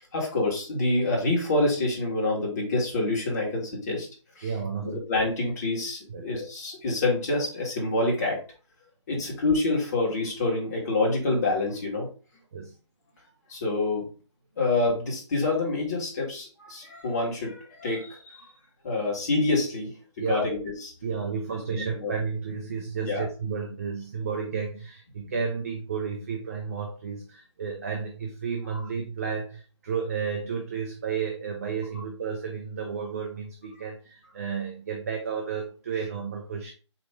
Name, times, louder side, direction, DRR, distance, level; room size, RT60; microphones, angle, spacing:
voice 1, 0.0-4.1 4.4-4.5 4.8-8.4 9.1-12.1 13.5-14.0 14.6-18.5 18.8-20.9 21.7-22.1 23.0-23.2 28.7-28.8, left 2 dB, 35° left, -2 dB, 1.5 m, -27 dB
voice 2, 4.4-5.0 6.1-6.2 9.1-9.3 12.5-12.7 20.2-20.5 21.0-36.7, right 6 dB, 30° right, 2 dB, 0.5 m, -32 dB
4.2 x 3.0 x 3.3 m, 0.36 s
hypercardioid pair, 165°, 16 cm